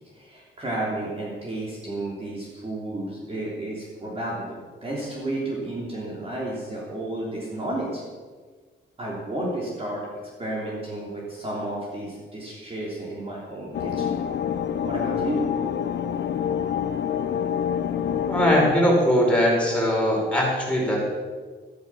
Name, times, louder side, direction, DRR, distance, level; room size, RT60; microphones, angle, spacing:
voice 1, 0.1-8.0 9.0-10.1 10.4-14.2 14.8-15.5, right 1 dB, 30° right, -4 dB, 3.3 m, -32 dB
sound 1, 13.7-18.8, left 8 dB, 60° left, 0.9 m, -26 dB
voice 2, 18.3-21.0, equal, 5° left, -4 dB, 5.6 m, -21 dB
13.5 x 13.0 x 6.2 m, 1.5 s
wide cardioid pair, 140°, 20 cm